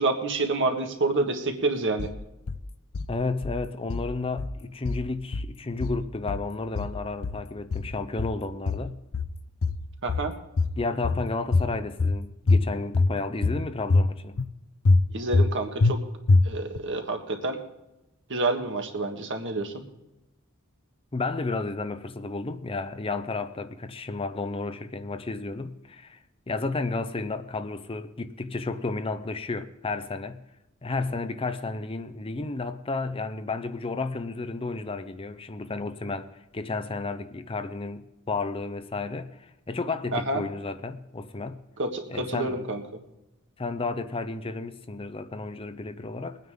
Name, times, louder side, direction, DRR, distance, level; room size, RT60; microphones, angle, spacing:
voice 1, 0.0-2.1 10.0-10.3 15.1-16.0 16.4-17.6 18.3-19.8 40.1-40.4 41.8-42.8, right 2 dB, 55° right, 1.6 m, -28 dB
sound 1, 2.0-2.6 2.9-3.6 3.9-4.6 4.8-5.5 5.8-6.5 6.7-7.4 7.7-8.4 8.7-9.3 9.6-10.3 10.6-11.2 11.5-12.2 12.5-13.1 13.4-14.1 14.4-14.5 14.8-15.5 15.8-15.9 16.3-16.8, left 3 dB, 65° left, 0.6 m, -24 dB
voice 2, 3.1-9.0 10.8-14.4 21.1-26.2 26.5-30.4 30.8-41.6 42.1-42.6 43.6-46.4, left 3 dB, 25° left, 0.6 m, -32 dB
22.0 x 9.4 x 3.7 m
head